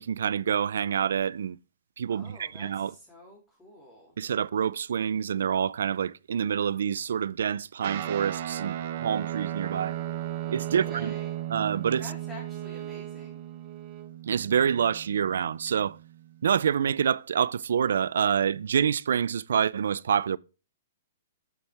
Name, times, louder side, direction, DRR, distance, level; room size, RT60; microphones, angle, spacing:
voice 1, 0.0-1.6 2.0-2.9 4.2-10.0 10.5-11.1 11.5-12.0 14.3-16.0 16.4-20.4, right 8 dB, 75° right, 0.5 m, -27 dB
voice 2, 2.1-4.1 10.7-11.4 12.0-13.4, left 2 dB, 10° left, 3.2 m, -48 dB
Guitar, 7.8-16.6, right 12 dB, 50° right, 1.2 m, -36 dB
Bowed string instrument, 9.1-14.1, right 11 dB, 30° right, 1.7 m, -43 dB
8.5 x 7.6 x 3.5 m
hypercardioid pair, 155°, 0 cm